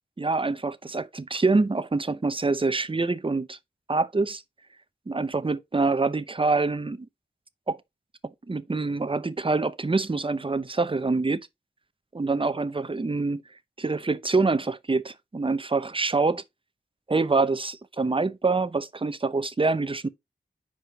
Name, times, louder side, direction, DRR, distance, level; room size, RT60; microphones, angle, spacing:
voice 1, 0.2-3.6 3.9-4.4 5.1-7.1 7.7-7.8 8.2-11.4 12.1-13.4 13.8-16.4 17.1-20.1, right 3 dB, 30° right, 0.7 m, -25 dB
6.3 x 5.0 x 4.1 m
wide cardioid pair, 60°, 19 cm